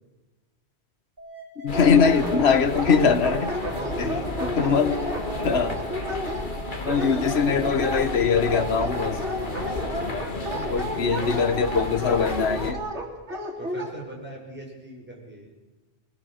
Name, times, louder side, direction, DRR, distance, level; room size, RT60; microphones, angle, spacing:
sound 1, 1.2-11.2, right 1 dB, 45° right, 4.9 m, -43 dB
voice 1, 1.6-3.5 4.0-4.2 4.6-5.1 5.4-5.8 6.8-9.2 10.7-12.8, left 6 dB, 65° left, 1.4 m, -22 dB
sound 2, 1.7-12.7, left 2 dB, 45° left, 1.9 m, -33 dB
Dog, 1.7-13.9, equal, 80° right, 3.3 m, -31 dB
voice 2, 3.7-4.4 9.8-10.9 13.6-15.5, right 1 dB, 10° right, 6.2 m, -41 dB
21.5 x 20.5 x 6.6 m
omnidirectional pair, 1.2 m